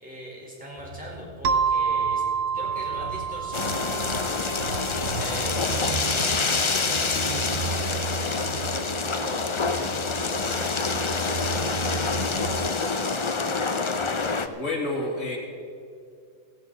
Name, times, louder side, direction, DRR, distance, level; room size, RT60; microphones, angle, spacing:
voice 1, 0.0-2.2 2.5-13.0, equal, 5° right, -5 dB, 4.5 m, -40 dB
sound 1, 0.8-12.7, right 5 dB, 45° right, 0.8 m, -36 dB
sound 2, 1.4-5.8, right 6 dB, 80° right, 1.1 m, -28 dB
sound 3, 3.5-14.5, left 4 dB, 35° left, 0.5 m, -27 dB
voice 2, 14.4-15.4, left 2 dB, 85° left, -2 dB, 3.0 m, -29 dB
16.5 x 15.0 x 4.1 m, 2.4 s
omnidirectional pair, 1.3 m